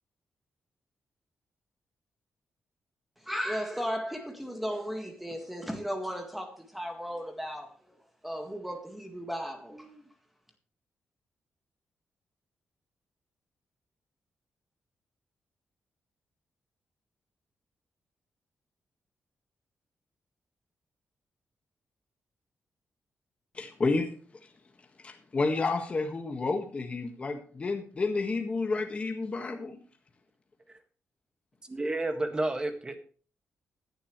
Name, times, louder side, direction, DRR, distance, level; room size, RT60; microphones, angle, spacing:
voice 1, 3.3-7.7 8.2-10.0, equal, 5° right, 1.8 m, -35 dB
voice 2, 23.5-24.1 25.0-29.8, left 3 dB, 30° left, 1.6 m, -30 dB
voice 3, 31.6-33.1, right 2 dB, 20° right, 1.8 m, -31 dB
16.0 x 11.5 x 3.2 m
wide cardioid pair, 160°, 4 cm